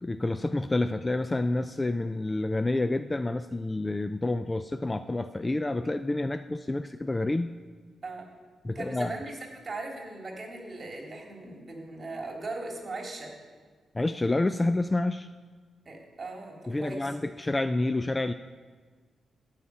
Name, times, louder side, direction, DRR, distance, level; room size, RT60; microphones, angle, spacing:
voice 1, 0.0-7.5 8.6-9.1 13.9-15.3 16.7-18.3, left 2 dB, 20° left, 11 dB, 0.4 m, -28 dB
voice 2, 8.7-9.4 9.6-13.3 15.8-17.1, right 2 dB, 35° right, 1 dB, 3.1 m, -39 dB
14.5 x 5.8 x 8.6 m, 1.5 s
cardioid pair, 100°, 0 cm